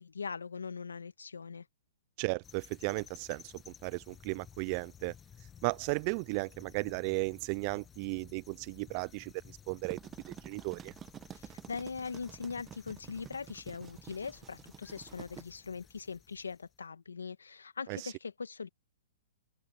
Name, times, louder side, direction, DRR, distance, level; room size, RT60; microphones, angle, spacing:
voice 1, 0.0-1.6 11.3-18.7, left 5 dB, 90° left, 1.7 m, -41 dB
voice 2, 2.2-5.1 5.6-10.0 10.3-10.9 17.9-18.1, right 31 dB, 40° right, 0.5 m, -35 dB
sound 1, 2.4-16.8, left 8 dB, 15° left, 1.0 m, -56 dB
sound 2, 9.6-15.4, right 9 dB, 20° right, 1.0 m, -49 dB
open air
hypercardioid pair, 130°, 0 cm